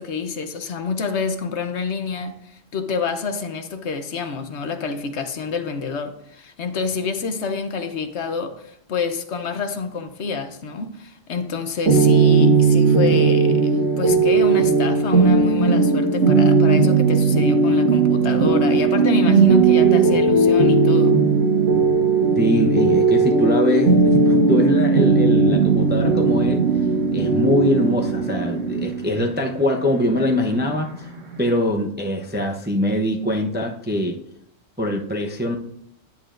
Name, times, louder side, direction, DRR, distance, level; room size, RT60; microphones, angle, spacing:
voice 1, 0.0-21.2, left 5 dB, 65° left, 1.1 m, -27 dB
sound 1, 11.9-31.4, right 4 dB, 90° right, 1.8 m, -17 dB
voice 2, 22.4-26.6 27.1-31.1 31.4-34.2 34.8-35.6, left 1 dB, 10° right, 0.5 m, -22 dB
9.6 x 8.7 x 2.5 m
omnidirectional pair, 1.3 m